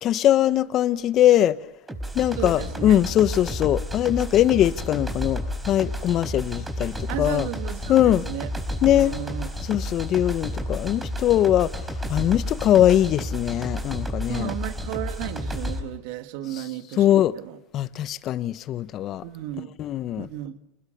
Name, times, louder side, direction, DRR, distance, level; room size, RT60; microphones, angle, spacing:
voice 1, 0.0-1.6 2.1-7.5 7.9-8.3 8.8-9.1 9.6-14.5 16.5-16.6 17.0-17.3 17.7-19.2 19.8-20.3, left 12 dB, 45° left, 1.1 m, -21 dB
sound 1, 1.9-15.8, left 1 dB, 10° right, 5.2 m, -31 dB
voice 2, 2.4-3.0 7.1-8.5 8.8-9.5 14.3-17.6 19.2-19.7 20.2-20.6, right 13 dB, 65° right, 2.0 m, -34 dB
29.5 x 20.5 x 6.7 m
hypercardioid pair, 100°, 0 cm